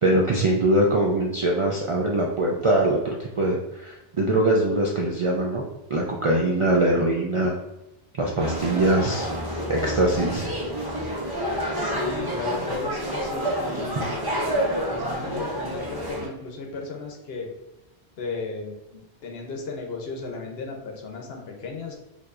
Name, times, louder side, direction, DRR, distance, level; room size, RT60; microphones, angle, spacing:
voice 1, 0.0-5.6 5.9-7.5 8.2-9.3 9.7-10.5, right 1 dB, 55° right, -2 dB, 0.3 m, -22 dB
sound 1, 8.4-16.3, equal, 25° right, 0.8 m, -28 dB
voice 2, 11.7-14.3 14.9-17.5 18.2-22.0, left 3 dB, 70° left, 2 dB, 0.9 m, -35 dB
4.6 x 2.6 x 2.4 m, 0.96 s
omnidirectional pair, 1.1 m